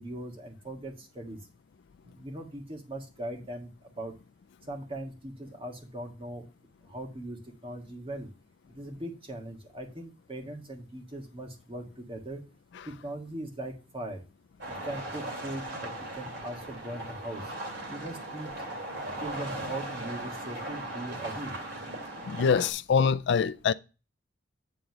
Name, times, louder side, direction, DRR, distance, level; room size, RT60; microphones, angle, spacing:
voice 1, 0.0-1.4 2.0-4.1 4.7-6.4 6.8-8.3 8.7-12.4 12.8-14.2 14.6-17.5 17.9-18.7 19.2-21.5, right 1 dB, 30° right, 1.7 m, -40 dB
sound 1, 14.6-22.7, right 1 dB, 65° right, 2.8 m, -38 dB
voice 2, 22.3-23.7, left 6 dB, 65° left, 0.4 m, -24 dB
9.7 x 3.8 x 5.9 m
head